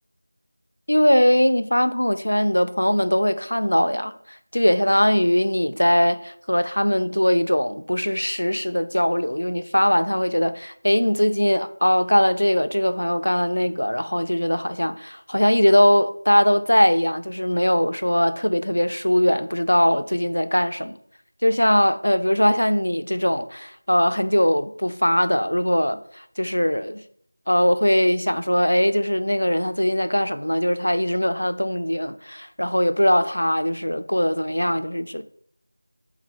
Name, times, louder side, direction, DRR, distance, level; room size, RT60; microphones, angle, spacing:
voice 1, 0.9-21.0 21.4-27.0 27.5-35.2, equal, 75° left, 0.3 m, -21 dB
3.3 x 3.2 x 3.2 m
figure-of-eight pair, 170°, 0 cm